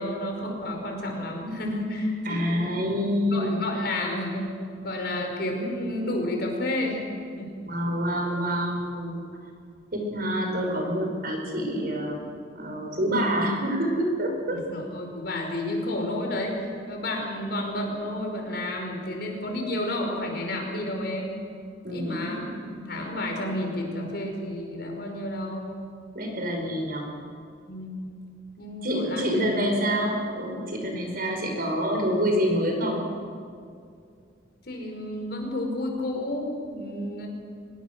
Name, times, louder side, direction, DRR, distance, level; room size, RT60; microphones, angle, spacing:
voice 1, 0.0-2.8 3.3-4.5 4.8-7.0 7.4-7.5 14.5-21.3 21.9-22.5 22.8-25.7 27.7-28.0 28.6-29.5 34.7-37.3, left 1 dB, 60° left, 2 dB, 5.0 m, -31 dB
voice 2, 2.3-3.5 7.7-9.2 9.9-12.2 12.5-14.6 21.8-22.4 22.7-22.8 26.1-27.1 28.8-33.0, equal, 55° right, 1 dB, 5.6 m, -27 dB
24.0 x 21.0 x 6.7 m, 2.3 s
head